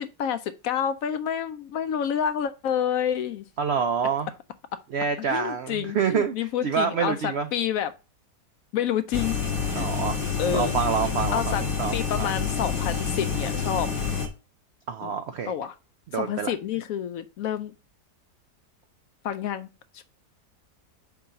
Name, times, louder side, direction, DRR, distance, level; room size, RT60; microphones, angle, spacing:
voice 1, 0.0-3.4 5.3-7.9 8.7-9.3 9.7-9.9 10.4-10.7 11.3-11.6 11.9-13.9 15.0-15.1 15.5-15.7 16.1-17.7 19.2-19.7 19.9-20.0, left 9 dB, 70° left, 0.9 m, -28 dB
voice 2, 3.6-4.3 4.9-7.5 9.7-12.3 14.9-15.5 16.1-16.5, right 6 dB, 85° right, 0.5 m, -27 dB
sound 1, 9.1-14.3, left 6 dB, 45° left, 1.7 m, -28 dB
4.8 x 3.9 x 5.5 m
omnidirectional pair, 1.7 m